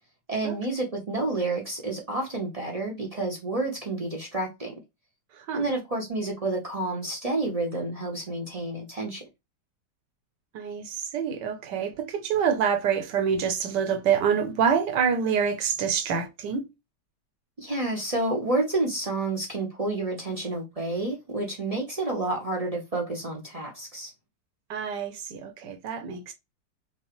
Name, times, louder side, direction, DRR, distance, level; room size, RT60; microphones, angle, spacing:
voice 1, 0.3-4.8 5.5-9.2 17.6-24.1, right 2 dB, 40° right, 0.5 m, -29 dB
voice 2, 10.5-16.7 24.7-26.3, right 7 dB, 75° right, 1.4 m, -26 dB
5.3 x 2.0 x 3.0 m
omnidirectional pair, 1.9 m